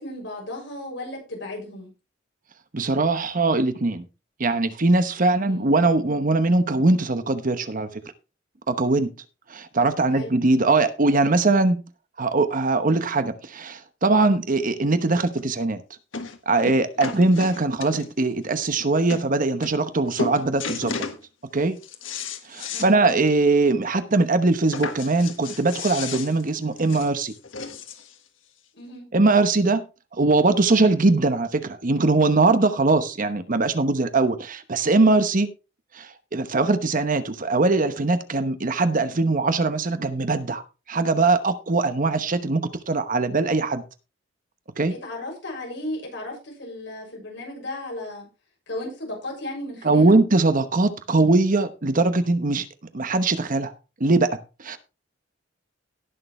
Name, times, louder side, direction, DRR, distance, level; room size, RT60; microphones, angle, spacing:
voice 1, 0.0-1.9 5.4-5.7 10.1-10.3 16.9-17.3 22.7-23.0 28.7-29.0 44.9-48.3 48.7-50.2, left 1 dB, 70° left, -1 dB, 6.7 m, -35 dB
voice 2, 2.7-4.0 4.4-8.0 8.7-9.1 9.5-11.8 12.2-15.8 16.5-20.9 21.5-21.8 22.5-27.3 29.1-29.8 30.1-35.5 35.9-40.6 40.9-43.8 44.8-45.0 49.8-52.7 52.9-53.7 54.0-54.8, right 3 dB, 45° right, 11 dB, 1.0 m, -21 dB
sound 1, 15.4-15.5 16.1-16.4 16.7-18.3 18.8-18.9 19.1-19.3 19.6-19.9 20.2-21.2 21.6-22.9 23.3-23.4 23.7-23.8 24.7-28.1 29.0-29.1, left 4 dB, 85° left, 1.5 m, -33 dB
18.0 x 6.8 x 3.2 m, 0.30 s
head